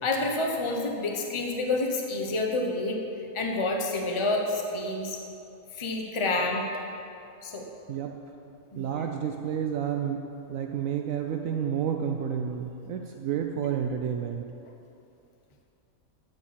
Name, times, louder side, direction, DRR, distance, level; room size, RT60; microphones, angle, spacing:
voice 1, 0.0-3.0 3.3-5.2 5.7-6.7 7.4-7.6 8.7-9.0, left 2 dB, 25° left, 1 dB, 1.0 m, -28 dB
voice 2, 8.8-10.2 10.5-14.4, right 8 dB, 75° right, 4 dB, 1.0 m, -30 dB
12.5 x 5.1 x 7.5 m, 2.7 s
omnidirectional pair, 1.5 m